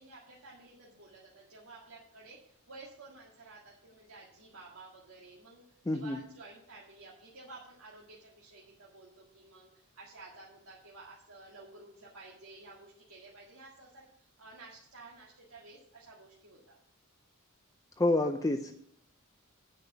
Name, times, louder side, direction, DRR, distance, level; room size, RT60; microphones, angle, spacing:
voice 1, 0.0-14.1 14.4-16.8, right 3 dB, 85° right, -4 dB, 2.0 m, -53 dB
voice 2, 5.9-6.2 18.0-18.7, left 2 dB, 15° left, 6 dB, 0.5 m, -28 dB
9.6 x 5.4 x 8.1 m, 0.64 s
head